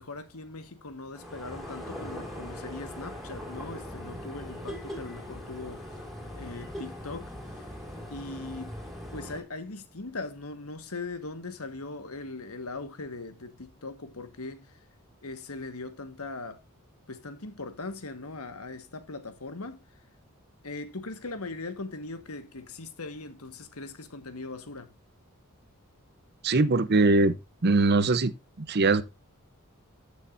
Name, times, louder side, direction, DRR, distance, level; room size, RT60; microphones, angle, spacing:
voice 1, 0.0-5.9 6.3-7.7 8.1-8.8 9.1-14.8 15.2-16.6 17.1-19.8 20.6-25.0, left 3 dB, 85° left, 1.6 m, -40 dB
Pulls up and Parks Car, 1.1-9.4, equal, ahead, 3.2 m, -40 dB
voice 2, 26.4-27.3 27.6-28.3 28.7-29.0, right 3 dB, 50° right, 0.7 m, -21 dB
14.0 x 6.5 x 2.6 m
head